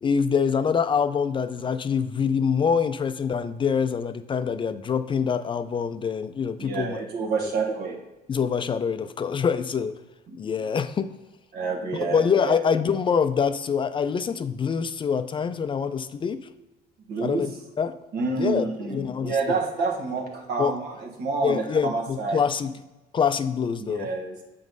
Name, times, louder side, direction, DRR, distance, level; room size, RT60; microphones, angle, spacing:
voice 1, 0.0-7.0 8.3-9.9 10.4-11.1 12.0-16.4 17.2-17.5 17.8-17.9 18.4-19.4 20.6-20.7 21.4-22.7 23.1-24.1, left 6 dB, 30° left, 10 dB, 0.4 m, -25 dB
voice 2, 6.6-8.0 10.3-10.4 11.5-12.7 17.1-17.5 18.1-22.4 23.8-24.4, right 4 dB, 90° right, 0 dB, 1.5 m, -28 dB
7.7 x 3.0 x 5.3 m, 1.1 s
cardioid pair, 110°, 17 cm